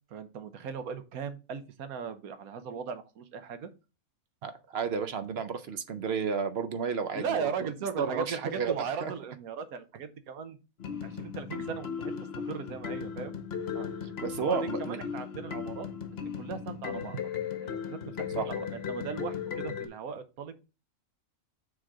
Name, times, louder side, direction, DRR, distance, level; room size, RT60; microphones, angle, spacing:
voice 1, 0.1-3.7 7.1-10.6 11.0-12.1 12.5-13.4 14.4-15.9 16.1-17.2 17.6-20.6, right 6 dB, 85° right, 10 dB, 1.3 m, -38 dB
voice 2, 4.4-7.7 8.0-9.1 13.7-13.9 14.2-15.0 18.3-18.5, right 6 dB, 55° right, 10 dB, 0.8 m, -32 dB
sound 1, 10.8-19.9, left 7 dB, 50° left, 1.0 m, -36 dB
6.3 x 3.7 x 4.7 m, 0.31 s
omnidirectional pair, 1.5 m